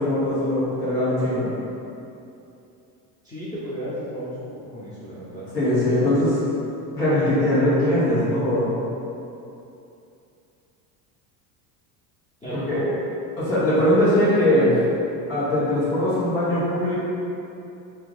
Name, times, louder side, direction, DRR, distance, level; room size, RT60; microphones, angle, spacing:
voice 1, 0.0-1.5 5.5-6.4 6.9-8.8 12.5-12.8 13.4-14.8 15.3-16.9, left 1 dB, 75° left, -11 dB, 1.4 m, -21 dB
voice 2, 3.2-5.5 12.4-13.0, equal, 15° left, -11 dB, 0.7 m, -34 dB
2.9 x 2.4 x 3.6 m, 2.7 s
supercardioid pair, 115°, 43 cm